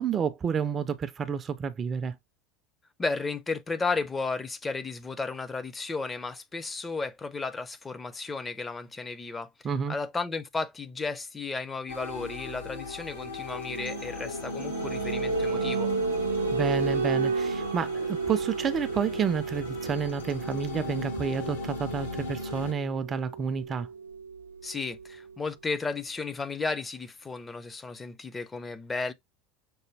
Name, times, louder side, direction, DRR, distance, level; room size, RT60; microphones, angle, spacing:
voice 1, 0.0-2.2 9.6-10.0 16.5-23.9, right 6 dB, 30° right, 0.5 m, -30 dB
voice 2, 3.0-9.5 9.9-15.9 24.6-29.1, left 4 dB, 15° left, 0.6 m, -33 dB
sound 1, 11.9-22.7, left 3 dB, 75° left, 1.4 m, -37 dB
sound 2, 13.7-25.2, right 4 dB, 80° right, 0.5 m, -32 dB
6.0 x 2.2 x 3.2 m
figure-of-eight pair, 75°, 0 cm